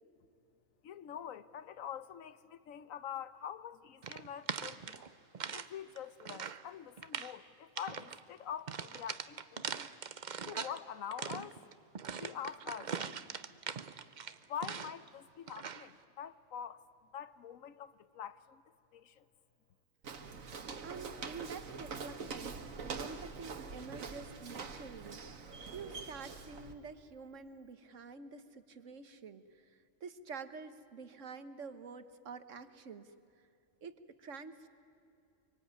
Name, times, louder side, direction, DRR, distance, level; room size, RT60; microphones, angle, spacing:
voice 1, 0.8-5.0 5.5-9.9 10.5-11.6 12.2-13.1 14.5-16.8 17.1-18.6 18.9-19.2, left 9 dB, 85° left, 1.2 m, -45 dB
sound 1, 4.0-5.7 6.0-6.6 7.0-7.4 7.8-8.2 8.7-10.8 11.1-15.1 15.5-15.9, right 6 dB, 40° right, 0.7 m, -41 dB
Walk footsteps, 20.0-26.7, right 5 dB, 85° right, 1.8 m, -44 dB
voice 2, 20.8-25.2 25.7-33.1 33.8-34.7, right 5 dB, 70° right, 1.5 m, -48 dB
25.5 x 24.0 x 9.6 m
omnidirectional pair, 1.4 m